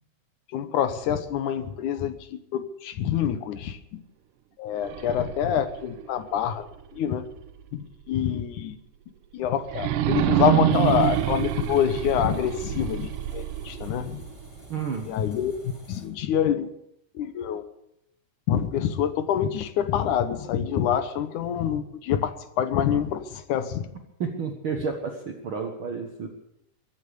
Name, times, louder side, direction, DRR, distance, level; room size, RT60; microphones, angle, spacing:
voice 1, 0.5-3.8 4.6-7.3 7.7-8.8 9.3-14.2 15.0-16.7 17.1-17.7 18.5-23.9, left 9 dB, 80° left, 11 dB, 2.6 m, -26 dB
sound 1, 4.8-7.7 8.2-8.3 9.7-14.7, right 12 dB, 90° right, 2.3 m, -27 dB
sound 2, 10.7-16.1, equal, 20° left, 7.7 m, -49 dB
voice 2, 14.7-15.1 24.2-26.3, right 5 dB, 50° right, 2 dB, 1.8 m, -31 dB
23.5 x 9.0 x 6.8 m, 0.81 s
omnidirectional pair, 3.5 m